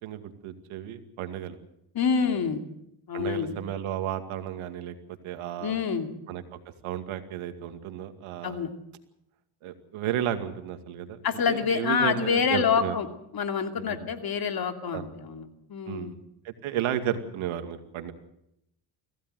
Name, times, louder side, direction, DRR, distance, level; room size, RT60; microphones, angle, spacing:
voice 1, 0.0-1.6 3.1-4.9 5.2-5.8 6.3-6.4 6.8-8.6 9.6-11.2 11.5-13.0 14.0-14.1 14.9-15.1 15.9-16.1 16.4-18.1, right 10 dB, 85° right, 8 dB, 2.4 m, -33 dB
voice 2, 1.9-2.6 3.1-3.5 5.6-6.1 8.4-8.7 11.2-13.1 13.3-16.1, left 6 dB, 50° left, 6 dB, 2.7 m, -27 dB
25.5 x 16.5 x 7.8 m, 0.80 s
cardioid pair, 105°, 48 cm